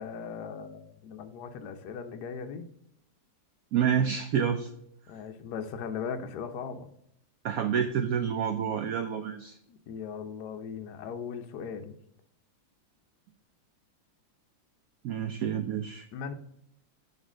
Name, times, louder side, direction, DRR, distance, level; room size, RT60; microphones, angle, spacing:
voice 1, 0.0-2.7 5.1-6.9 9.7-12.0 15.5-15.6 16.1-16.3, left 6 dB, 70° left, 6 dB, 1.1 m, -38 dB
voice 2, 3.7-4.7 7.4-9.6 15.0-16.1, right 8 dB, 85° right, 7 dB, 0.7 m, -28 dB
6.5 x 3.3 x 6.0 m, 0.72 s
omnidirectional pair, 2.1 m